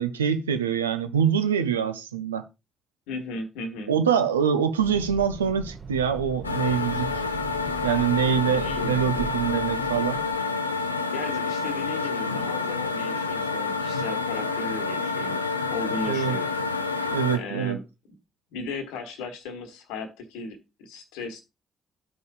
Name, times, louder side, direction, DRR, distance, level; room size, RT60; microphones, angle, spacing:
voice 1, 0.0-2.5 3.9-7.1 7.8-10.2 16.1-16.4 17.1-17.8, right 8 dB, 85° right, 0.5 m, -24 dB
voice 2, 3.1-3.9 8.5-9.0 11.1-15.4 15.7-16.5 17.3-17.8 18.5-21.4, left 3 dB, 70° left, 1.1 m, -36 dB
sound 1, 4.8-10.4, right 4 dB, 40° right, 1.7 m, -40 dB
sound 2, 6.4-17.4, left 4 dB, 90° left, 0.4 m, -28 dB
13.0 x 5.3 x 2.4 m
figure-of-eight pair, 40°, 0 cm